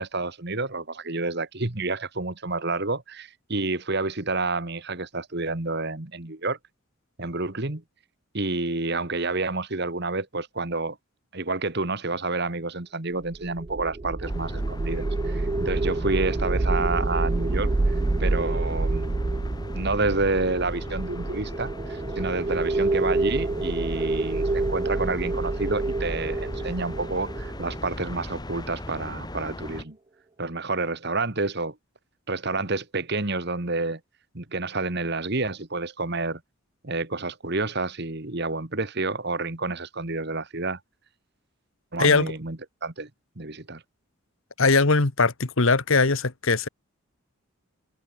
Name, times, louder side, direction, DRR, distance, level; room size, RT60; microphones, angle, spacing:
voice 1, 0.0-6.6 7.2-7.8 8.3-11.0 11.3-17.9 18.2-19.2 19.7-30.0 30.4-31.8 32.3-34.0 34.3-36.4 36.8-40.8 41.9-43.1 43.4-43.8, right 3 dB, 50° right, 1.7 m, -29 dB
sound 1, 13.3-28.5, right 2 dB, 25° right, 0.4 m, -27 dB
sound 2, 14.2-29.8, left 1 dB, 20° left, 1.5 m, -38 dB
voice 2, 42.0-42.3 44.6-46.7, left 3 dB, 65° left, 1.4 m, -20 dB
head